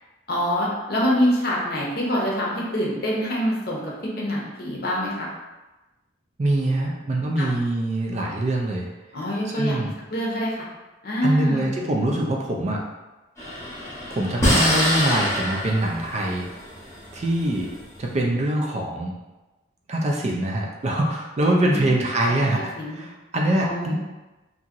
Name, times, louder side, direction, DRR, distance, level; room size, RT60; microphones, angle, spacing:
voice 1, 0.3-5.3 7.4-7.5 9.1-9.8 10.1-10.5 11.0-11.7 21.4-21.9 22.2-22.5 22.8-23.0 23.6-23.9, equal, 50° left, -4 dB, 0.7 m, -25 dB
voice 2, 6.4-8.9 9.4-9.9 11.2-12.8 14.1-16.5 17.1-17.7 18.0-19.1 19.9-23.9, right 1 dB, 35° right, -1 dB, 0.3 m, -24 dB
sound 1, 13.4-18.0, equal, 15° left, 0.8 m, -25 dB
2.8 x 2.7 x 2.5 m, 1.1 s
head